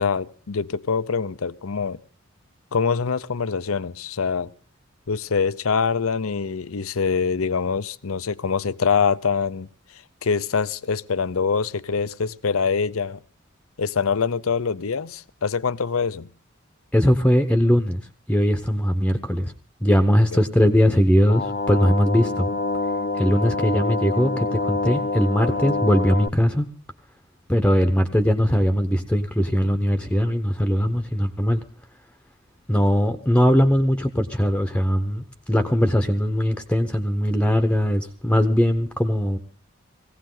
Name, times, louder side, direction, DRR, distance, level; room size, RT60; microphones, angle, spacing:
voice 1, 0.0-2.0 2.7-4.5 5.1-9.7 10.2-13.2 13.8-16.3 20.3-20.4, left 5 dB, 85° left, 0.7 m, -24 dB
voice 2, 16.9-18.0 18.3-19.5 19.8-22.5 23.1-26.7 27.5-31.6 32.7-39.4, equal, 5° left, 0.9 m, -20 dB
sound 1, 21.3-26.3, left 3 dB, 40° left, 0.7 m, -26 dB
18.5 x 16.5 x 3.9 m
head